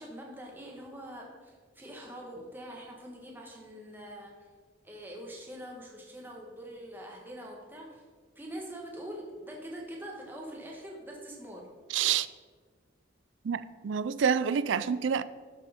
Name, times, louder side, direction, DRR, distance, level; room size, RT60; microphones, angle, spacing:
voice 1, 0.0-4.5 4.8-8.0 8.3-11.7, equal, 10° right, 1.3 m, -44 dB
voice 2, 11.9-12.3 13.5-15.2, right 7 dB, 85° right, 0.4 m, -28 dB
12.5 x 6.3 x 4.3 m
head